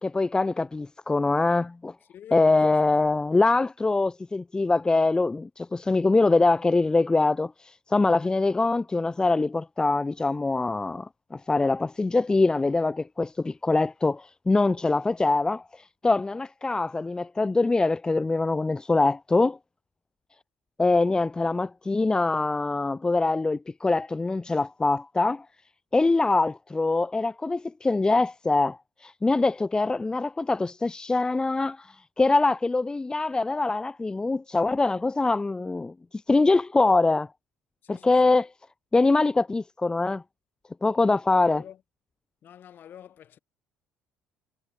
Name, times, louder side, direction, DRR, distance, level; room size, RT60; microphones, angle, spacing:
voice 1, 0.0-1.9 2.3-15.6 16.0-19.6 20.8-25.4 25.9-35.9 36.3-37.3 38.0-38.5 38.9-40.2 40.8-41.6, left 3 dB, 20° left, 0.8 m, -23 dB
voice 2, 2.1-3.1 37.8-38.4 41.3-41.8 42.4-43.4, left 10 dB, 55° left, 7.9 m, -48 dB
hypercardioid pair, 65°, 4 cm